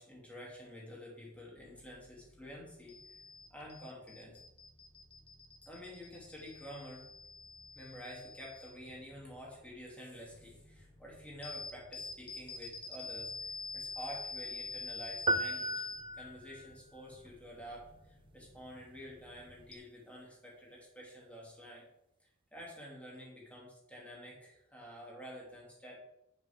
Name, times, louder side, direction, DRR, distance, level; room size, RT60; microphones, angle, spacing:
voice 1, 0.0-3.2 3.5-4.4 5.6-7.1 7.7-15.9 16.2-21.8 22.2-26.0, equal, 5° left, -4 dB, 3.2 m, -49 dB
sound 1, 1.6-19.8, left 3 dB, 25° left, 1.2 m, -48 dB
sound 2, 15.3-16.7, right 2 dB, 25° right, 0.3 m, -34 dB
9.1 x 7.9 x 3.8 m, 0.82 s
head